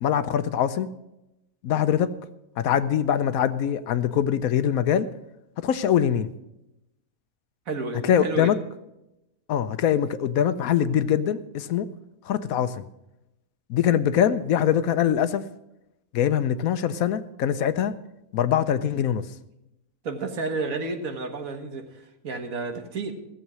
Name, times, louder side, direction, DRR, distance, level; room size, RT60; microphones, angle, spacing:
voice 1, 0.0-0.9 1.6-2.1 2.6-5.1 5.6-6.3 8.0-8.6 9.5-11.9 12.2-12.8 13.7-15.4 16.1-17.9 18.3-19.3, left 9 dB, 75° left, 13 dB, 1.0 m, -23 dB
voice 2, 7.7-8.5 20.0-23.1, right 3 dB, 65° right, 5 dB, 1.8 m, -31 dB
16.0 x 7.4 x 6.1 m, 0.91 s
omnidirectional pair, 1.6 m